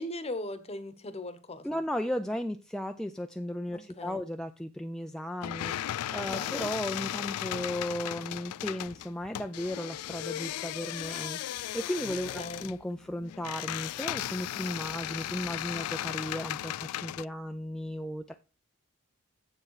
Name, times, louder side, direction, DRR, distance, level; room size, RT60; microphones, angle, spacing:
voice 1, 0.0-1.8 3.7-4.2 6.2-6.7 12.1-12.7, left 1 dB, 30° left, 0.9 m, -39 dB
voice 2, 1.6-18.3, left 1 dB, 5° left, 0.3 m, -35 dB
sound 1, 5.4-17.3, left 13 dB, 85° left, 0.3 m, -36 dB
7.7 x 7.2 x 4.7 m
head